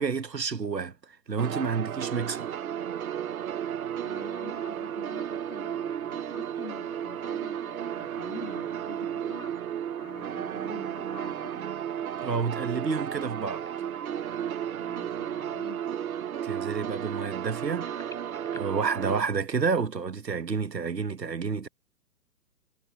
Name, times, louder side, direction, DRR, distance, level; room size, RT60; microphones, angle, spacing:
voice 1, 0.0-2.5 12.2-13.6 16.4-18.0 18.5-21.7, right 5 dB, 85° right, 1.6 m, -30 dB
sound 1, 1.4-19.2, right 9 dB, 60° right, 1.2 m, -33 dB
voice 2, 4.0-9.5 10.0-11.7 12.0-12.4 14.8-15.8, left 7 dB, 60° left, 7.8 m, -47 dB
sound 2, 13.5-19.8, left 4 dB, 5° left, 7.9 m, -56 dB
figure-of-eight pair, 130°, 49 cm